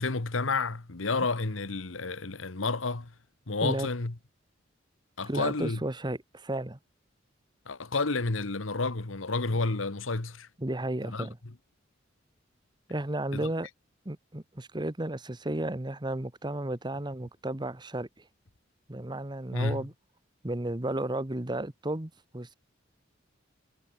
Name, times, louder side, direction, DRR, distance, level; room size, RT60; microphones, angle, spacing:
voice 1, 0.0-3.1 3.5-4.1 5.2-5.8 7.6-10.5 11.0-11.3 13.3-13.5 19.5-19.8, left 3 dB, 85° left, 1.4 m, -30 dB
voice 2, 5.3-6.8 10.6-11.4 12.9-13.7 14.0-18.2 18.9-19.9 20.4-22.5, right 1 dB, 20° right, 1.4 m, -33 dB
head